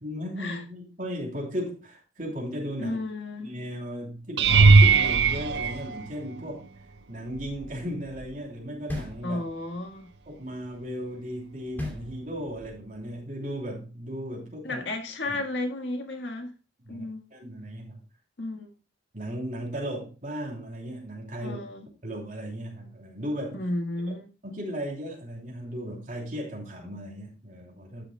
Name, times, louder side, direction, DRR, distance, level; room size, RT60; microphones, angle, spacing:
voice 1, 0.0-3.0 3.4-6.7 7.1-9.4 10.3-14.8 15.3-15.4 16.9-18.0 19.1-21.6 22.0-23.6 24.4-28.0, equal, 45° right, 3.2 m, -36 dB
voice 2, 2.8-3.5 9.2-10.1 14.6-16.5 16.9-17.3 18.4-18.7 21.4-21.9 23.5-24.3, left 2 dB, 85° left, 1.6 m, -33 dB
sound 1, 4.4-6.7 7.3-7.8 8.2-8.3 12.7-12.8, right 4 dB, 70° right, 0.6 m, -19 dB
sound 2, 8.9-9.8 11.8-12.7, left 1 dB, 10° left, 2.2 m, -36 dB
11.5 x 6.9 x 2.2 m
head